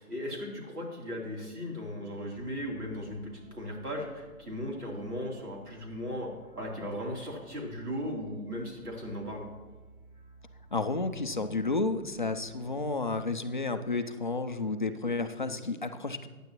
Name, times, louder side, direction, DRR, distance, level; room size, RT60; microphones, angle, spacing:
voice 1, 0.0-6.3 6.6-9.5 15.5-15.6, equal, 85° right, -2 dB, 3.5 m, -37 dB
sound 1, 2.3-12.8, right 1 dB, 25° right, 2.5 m, -58 dB
voice 2, 10.7-16.3, left 3 dB, 35° left, 8 dB, 0.4 m, -31 dB
14.5 x 9.6 x 3.0 m, 1.3 s
figure-of-eight pair, 145°, 45 cm